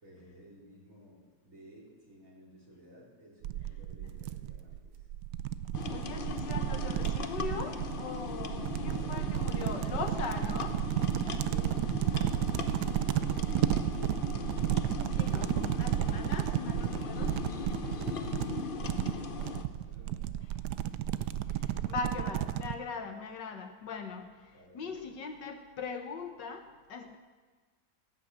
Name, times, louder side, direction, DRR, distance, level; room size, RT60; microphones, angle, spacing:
voice 1, 0.0-5.1 8.6-9.8 11.0-14.2 17.3-20.6 22.9-23.2 24.1-24.2 24.5-25.2, equal, 45° right, -4 dB, 4.1 m, -56 dB
sound 1, 3.4-22.8, right 12 dB, 70° right, 1.1 m, -32 dB
sound 2, 5.7-19.6, left 5 dB, 50° left, 0.6 m, -39 dB
voice 2, 5.9-10.8 14.9-17.4 20.5-20.6 21.5-27.2, left 4 dB, 70° left, 6 dB, 1.8 m, -40 dB
16.0 x 9.8 x 7.5 m, 1.4 s
omnidirectional pair, 2.0 m